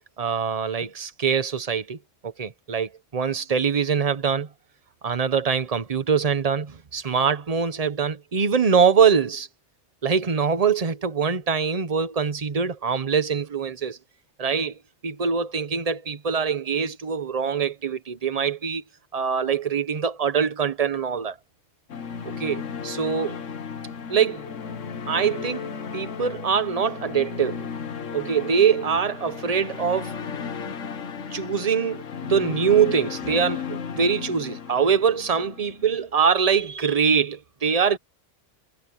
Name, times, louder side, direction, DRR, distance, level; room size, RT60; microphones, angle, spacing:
voice 1, 0.0-2.0 2.2-4.5 5.0-9.5 10.0-14.0 14.4-14.7 15.0-18.8 19.1-21.4 22.2-23.4 24.1-24.5 25.1-27.7 28.1-30.2 31.3-38.0, right 6 dB, 30° right, 1.0 m, -23 dB
sound 1, 21.9-36.0, left 6 dB, 75° left, 1.5 m, -34 dB
omnidirectional pair, 1.3 m